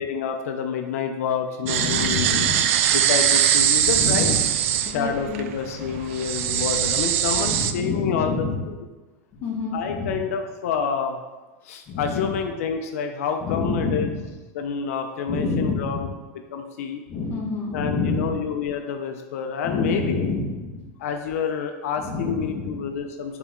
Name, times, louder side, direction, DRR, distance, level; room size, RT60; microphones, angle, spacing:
voice 1, 0.0-2.5 2.9-4.3 4.9-8.4 9.7-11.2 11.6-14.1 14.5-16.1 16.5-17.0 17.7-20.2 21.0-23.4, left 6 dB, 85° left, 5 dB, 0.6 m, -28 dB
voice 2, 1.6-2.8 3.9-4.3 4.8-5.4 5.7-5.9 7.4-8.6 9.4-10.2 11.9-12.4 13.4-14.3 15.3-16.0 17.1-18.4 19.6-20.8 22.0-22.8, left 3 dB, 25° left, -3 dB, 1.4 m, -28 dB
sound 1, 1.7-7.7, right 10 dB, 65° right, 0.4 m, -22 dB
7.1 x 4.1 x 3.7 m, 1.2 s
supercardioid pair, 165°, 8 cm